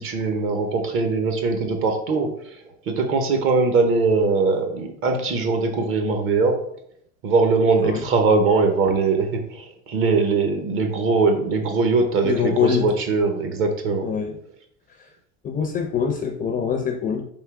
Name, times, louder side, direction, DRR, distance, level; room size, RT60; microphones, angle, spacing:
voice 1, 0.0-2.6 2.9-6.6 7.2-14.1, right 4 dB, 40° right, 5 dB, 0.8 m, -21 dB
voice 2, 12.2-12.9 14.0-14.4 15.4-17.2, left 7 dB, 25° left, 3 dB, 0.5 m, -24 dB
3.6 x 2.8 x 4.7 m, 0.69 s
supercardioid pair, 130°, 34 cm